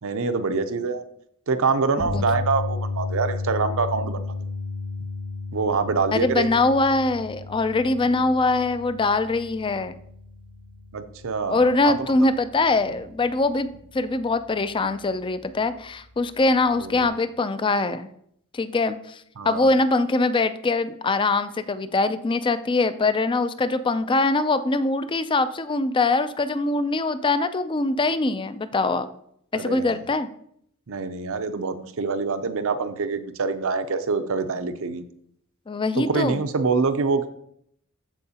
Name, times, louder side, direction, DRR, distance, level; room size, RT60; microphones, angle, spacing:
voice 1, 0.0-1.0 1.5-4.3 5.5-6.5 10.9-12.1 16.8-17.2 19.4-19.7 29.5-30.0 30.9-35.0 35.9-37.3, right 4 dB, 65° right, 10 dB, 0.6 m, -25 dB
sound 1, 2.0-14.3 14.6-14.9 17.0-17.1, left 3 dB, 75° left, 2.2 m, -34 dB
voice 2, 6.1-9.9 11.5-18.1 18.5-29.1 29.5-30.3 35.7-36.4, left 3 dB, 25° left, 12 dB, 0.4 m, -23 dB
13.5 x 4.6 x 2.8 m, 0.70 s
head